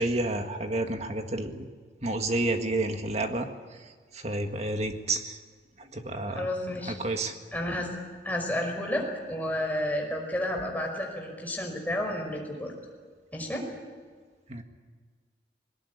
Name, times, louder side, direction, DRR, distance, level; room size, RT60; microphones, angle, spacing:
voice 1, 0.0-1.7 2.0-3.5 4.1-5.4 5.9-6.5 6.9-7.3 14.5-14.6, right 2 dB, 35° right, 5 dB, 1.9 m, -30 dB
voice 2, 6.3-6.9 7.5-7.9 8.2-12.7 13.3-13.7, left 1 dB, 10° left, 0 dB, 5.3 m, -31 dB
21.5 x 19.0 x 9.7 m, 1.5 s
head